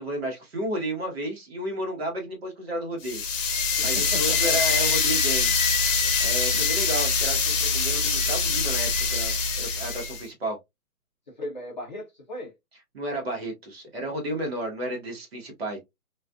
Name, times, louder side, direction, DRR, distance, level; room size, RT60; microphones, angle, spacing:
voice 1, 0.0-3.2 3.8-5.6 6.2-10.6 12.9-15.8, right 1 dB, 45° right, 1.0 m, -32 dB
sound 1, 3.0-10.2, left 4 dB, 60° left, 0.8 m, -24 dB
voice 2, 3.8-4.6 11.3-12.5, left 1 dB, 30° left, 0.6 m, -37 dB
2.4 x 2.3 x 2.2 m
hypercardioid pair, 155°, 44 cm